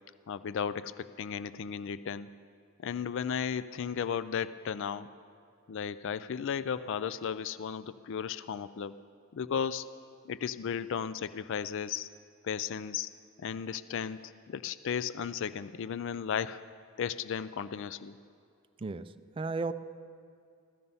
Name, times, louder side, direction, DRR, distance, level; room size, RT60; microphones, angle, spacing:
voice 1, 0.3-2.3 2.8-5.1 5.7-9.0 9.3-9.9 10.2-12.1 12.4-13.1 13.4-16.6 17.0-18.1, left 7 dB, 60° left, 14 dB, 0.4 m, -35 dB
voice 2, 18.8-19.7, right 3 dB, 25° right, 10 dB, 0.4 m, -35 dB
15.5 x 14.0 x 5.5 m, 2.4 s
head